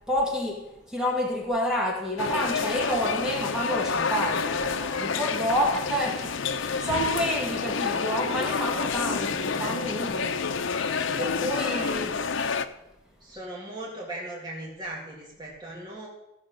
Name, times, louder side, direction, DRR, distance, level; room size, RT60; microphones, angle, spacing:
voice 1, 0.1-10.5 11.2-12.1, equal, 5° right, -1 dB, 1.9 m, -29 dB
sound 1, 2.2-12.6, left 5 dB, 70° left, 0.7 m, -29 dB
voice 2, 11.4-11.9 13.2-16.1, right 1 dB, 20° right, -4 dB, 2.2 m, -38 dB
15.0 x 7.4 x 6.4 m, 0.96 s
head